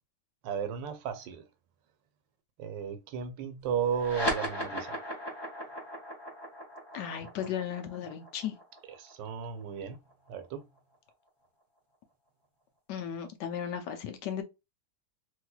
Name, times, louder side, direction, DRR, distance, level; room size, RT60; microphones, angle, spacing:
voice 1, 0.4-1.4 2.6-5.0 9.0-10.0 10.3-10.7, right 7 dB, 80° right, 1.3 m, -34 dB
sound 1, 3.9-10.8, equal, 20° left, 0.6 m, -37 dB
voice 2, 6.9-8.5 12.9-14.4, left 9 dB, 75° left, 1.2 m, -35 dB
3.2 x 3.2 x 2.2 m
omnidirectional pair, 2.0 m